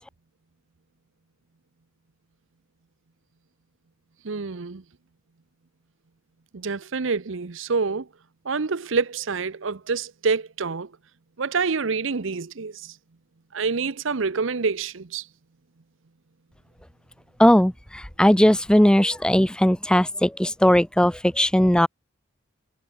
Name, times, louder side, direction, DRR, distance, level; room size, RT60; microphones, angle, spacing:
voice 1, 4.2-4.8 6.5-8.1 8.5-10.9 11.4-12.9 13.5-15.2, right 4 dB, 65° right, 0.8 m, -27 dB
voice 2, 17.4-21.9, equal, 5° left, 0.6 m, -18 dB
head